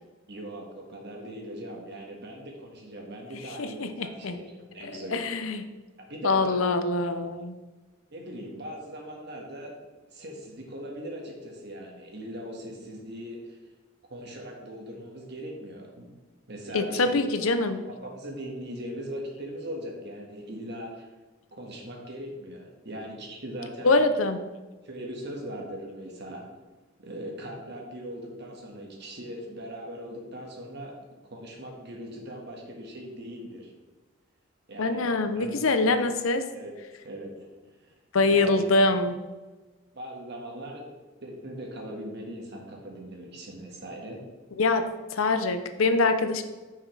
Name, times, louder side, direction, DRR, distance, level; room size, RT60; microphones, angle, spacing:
voice 1, 0.3-5.2 6.0-6.7 8.1-9.7 10.1-13.6 14.1-16.1 16.5-17.3 17.9-21.1 21.5-23.9 24.8-26.5 27.0-31.0 31.3-33.7 34.7-36.1 36.5-36.7 37.0-37.5 37.8-37.9 38.3-38.7 39.9-40.9 41.2-44.2, equal, 55° right, 0 dB, 1.6 m, -40 dB
voice 2, 3.6-4.4 4.8-5.6 6.2-7.6 16.7-17.8 23.8-24.4 34.8-36.4 38.1-39.2 44.6-44.8 45.1-46.4, left 3 dB, 75° left, 9 dB, 0.7 m, -24 dB
9.8 x 5.6 x 3.3 m, 1.2 s
head